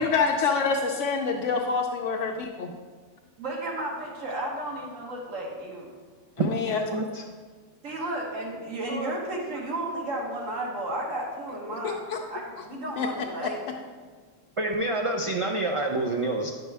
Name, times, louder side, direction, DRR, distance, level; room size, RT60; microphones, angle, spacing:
voice 1, 0.0-2.7 6.4-6.8 11.8-12.2 13.0-13.1 13.4-13.5, left 5 dB, 75° left, 2 dB, 1.0 m, -26 dB
voice 2, 3.4-5.9 7.8-12.0 12.3-13.6, right 1 dB, 90° right, -2 dB, 1.7 m, -33 dB
voice 3, 6.9-7.2 8.9-9.1 12.7-12.9 14.6-16.5, right 2 dB, 45° right, 1 dB, 0.4 m, -28 dB
10.0 x 6.1 x 3.4 m, 1.5 s
omnidirectional pair, 1.3 m